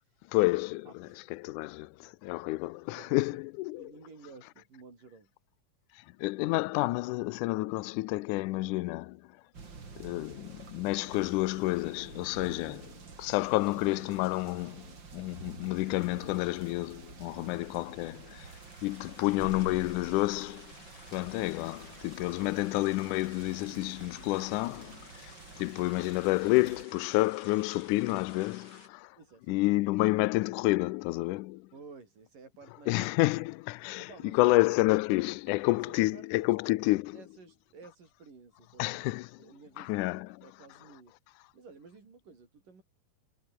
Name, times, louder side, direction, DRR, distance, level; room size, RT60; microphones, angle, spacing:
voice 1, 0.3-3.9 6.0-9.2 10.0-18.5 18.8-20.7 21.1-29.2 29.5-31.7 32.9-37.2 38.8-39.4 39.8-40.3, left 21 dB, 80° left, 2.0 m, -29 dB
voice 2, 0.9-1.2 2.9-3.4 3.8-5.3 17.4-17.7 22.2-22.6 29.2-29.6 31.7-33.1 34.0-34.5 35.9-39.1 39.4-41.1 41.5-42.8, right 4 dB, 75° right, 7.8 m, -53 dB
sound 1, 9.5-26.9, right 4 dB, 35° right, 3.5 m, -49 dB
sound 2, 17.5-28.9, left 3 dB, 30° left, 5.8 m, -55 dB
omnidirectional pair, 3.9 m